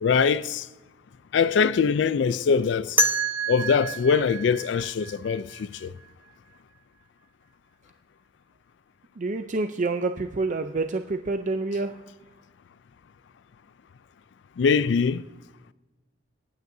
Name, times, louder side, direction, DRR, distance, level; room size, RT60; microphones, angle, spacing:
voice 1, 0.0-0.7 1.3-3.0 3.5-5.9 14.6-15.2, left 6 dB, 75° left, 0.4 m, -22 dB
sound 1, 3.0-5.8, right 2 dB, 10° right, 0.9 m, -28 dB
voice 2, 9.2-11.9, right 3 dB, 45° right, 0.5 m, -27 dB
27.5 x 9.4 x 2.7 m
head